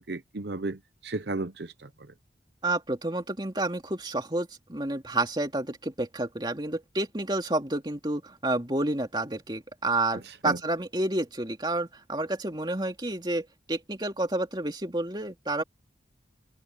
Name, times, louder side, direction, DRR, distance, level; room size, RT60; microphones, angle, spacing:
voice 1, 0.0-2.1 10.2-10.6, right 2 dB, 70° right, 0.9 m, -34 dB
voice 2, 2.6-15.6, right 2 dB, 25° right, 2.8 m, -30 dB
head